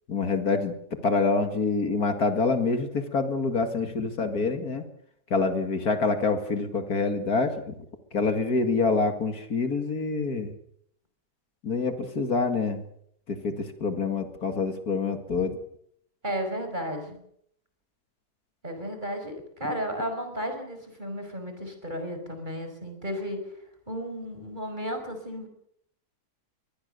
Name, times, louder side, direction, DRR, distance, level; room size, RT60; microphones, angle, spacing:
voice 1, 0.1-0.8 1.0-4.8 5.3-7.8 8.1-10.5 11.6-12.8 13.3-15.6, left 4 dB, 60° left, 7 dB, 2.5 m, -26 dB
voice 2, 16.2-17.2 18.6-23.4 23.9-25.5, equal, 25° right, 6 dB, 5.4 m, -33 dB
23.5 x 20.0 x 6.8 m, 0.70 s
omnidirectional pair, 1.8 m